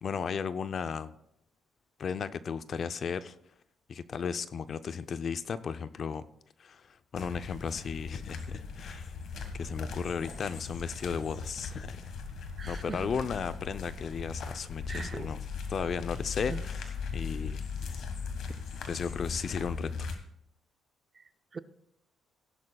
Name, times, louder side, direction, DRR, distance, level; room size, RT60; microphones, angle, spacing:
voice 1, 0.0-1.1 2.0-3.4 3.9-6.2 6.6-9.2 9.5-12.0 12.7-15.4 15.7-16.8 17.1-18.0 18.7-20.1, left 6 dB, 50° left, 12 dB, 0.6 m, -35 dB
sound 1, 7.2-20.2, left 5 dB, 70° left, 1.5 m, -39 dB
voice 2, 12.6-13.1 14.9-15.3 16.5-16.6 21.1-21.6, right 5 dB, 35° right, 13 dB, 0.5 m, -41 dB
16.5 x 11.0 x 2.3 m, 0.74 s
cardioid pair, 90°, 0 cm